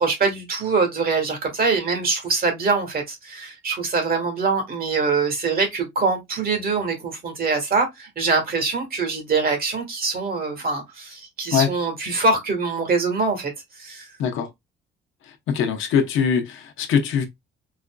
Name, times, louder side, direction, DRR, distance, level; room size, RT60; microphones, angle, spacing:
voice 1, 0.0-13.5 13.8-14.1, right 4 dB, 50° right, 1.5 m, -23 dB
voice 2, 14.2-14.5 15.5-17.2, left 7 dB, 85° left, 0.8 m, -22 dB
4.1 x 2.5 x 2.2 m
cardioid pair, 90°, 20 cm